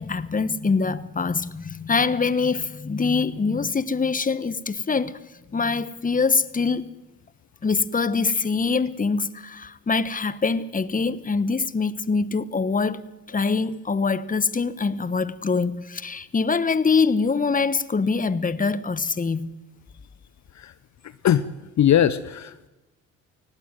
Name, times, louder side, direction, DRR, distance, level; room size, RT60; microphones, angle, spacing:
voice 1, 0.0-5.2 5.5-6.9 7.6-13.0 13.3-19.5, left 4 dB, 20° left, 1.2 m, -24 dB
voice 2, 21.0-21.4 21.8-22.7, left 10 dB, 50° left, 0.8 m, -21 dB
19.0 x 15.5 x 9.4 m
hypercardioid pair, 55°, 37 cm